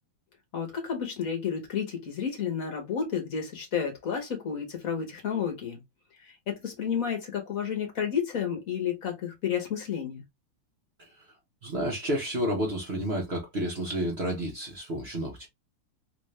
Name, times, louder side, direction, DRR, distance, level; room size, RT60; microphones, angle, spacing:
voice 1, 0.5-5.8 6.2-10.2, left 7 dB, 45° left, 1.4 m, -31 dB
voice 2, 11.6-15.5, equal, 50° right, 0.7 m, -31 dB
3.6 x 2.6 x 3.1 m
omnidirectional pair, 2.4 m